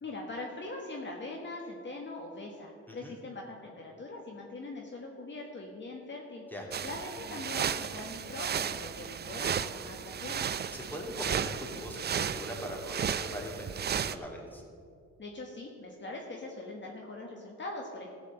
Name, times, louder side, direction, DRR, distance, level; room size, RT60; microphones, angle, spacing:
voice 1, 0.0-6.4 6.8-10.5 15.2-18.1, left 2 dB, 40° left, 0 dB, 1.4 m, -42 dB
sound 1, 6.7-14.1, right 8 dB, 35° right, 0.5 m, -34 dB
voice 2, 10.7-14.6, left 1 dB, 5° left, -2 dB, 2.8 m, -41 dB
15.0 x 5.1 x 7.8 m, 2.4 s
cardioid pair, 90°, 30 cm